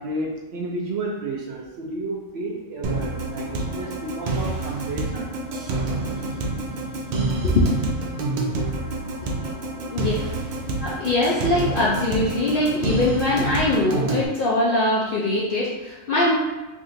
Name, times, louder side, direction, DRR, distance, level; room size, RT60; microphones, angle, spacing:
voice 1, 0.0-5.3, right 2 dB, 65° right, -2 dB, 0.7 m, -31 dB
sound 1, 2.8-14.3, right 2 dB, 90° right, 0.4 m, -28 dB
voice 2, 9.8-10.1 10.8-16.4, left 2 dB, 65° left, -5 dB, 0.5 m, -22 dB
3.6 x 2.5 x 2.5 m, 1.1 s
omnidirectional pair, 1.4 m